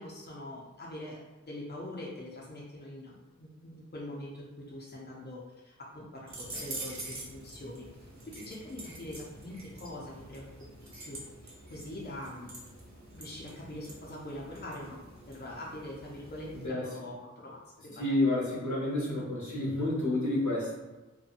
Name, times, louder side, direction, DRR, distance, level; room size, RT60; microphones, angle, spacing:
voice 1, 0.0-10.5 11.0-12.5 13.1-15.0 15.3-18.1, left 1 dB, 35° left, -4 dB, 0.5 m, -43 dB
sound 1, 6.3-16.7, right 2 dB, 65° right, 0.7 m, -46 dB
voice 2, 18.0-20.7, left 1 dB, 70° left, -5 dB, 0.9 m, -29 dB
2.7 x 2.2 x 2.5 m, 1.1 s
wide cardioid pair, 40°, 30 cm